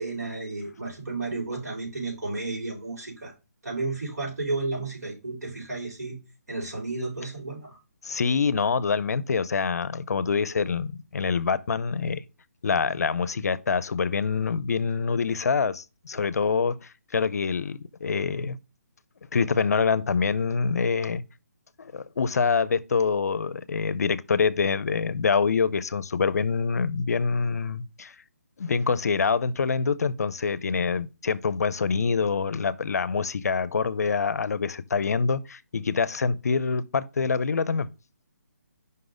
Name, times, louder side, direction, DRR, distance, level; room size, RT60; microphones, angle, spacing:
voice 1, 0.0-3.3 3.6-6.2 6.5-7.8, right 3 dB, 75° right, 4.2 m, -32 dB
voice 2, 8.0-12.2 12.6-16.8 17.1-18.6 19.3-21.2 21.8-28.1 28.6-37.9, left 5 dB, 70° left, 0.5 m, -25 dB
5.5 x 3.9 x 5.0 m
hypercardioid pair, 165°, 9 cm